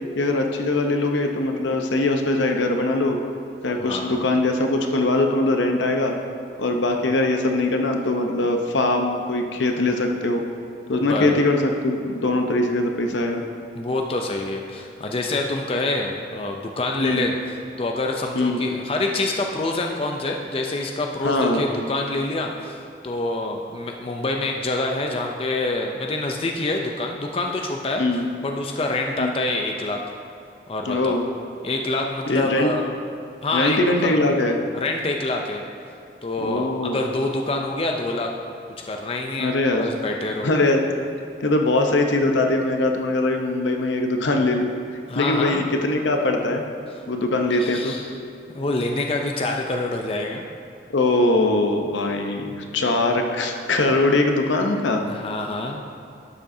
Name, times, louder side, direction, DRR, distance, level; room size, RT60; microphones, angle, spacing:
voice 1, 0.1-3.2 3.6-6.2 6.6-10.4 10.9-13.4 17.0-17.3 18.3-18.6 21.2-21.6 28.0-28.2 29.2-29.3 30.8-31.2 32.3-32.7 33.5-34.6 36.4-37.0 39.4-39.8 40.4-40.8 41.4-44.7 45.1-46.6 47.1-48.0 50.9-55.0, left 2 dB, 80° left, 3 dB, 0.8 m, -21 dB
voice 2, 3.8-4.2 11.0-11.4 13.8-17.3 17.8-22.8 23.0-30.0 30.7-31.2 31.6-32.9 33.4-34.2 34.7-35.6 36.2-36.7 36.9-38.3 38.8-40.5 45.1-45.6 47.5-48.1 48.5-50.4 55.1-55.8, left 2 dB, 30° left, 2 dB, 0.4 m, -26 dB
11.5 x 7.5 x 2.7 m, 2.6 s
head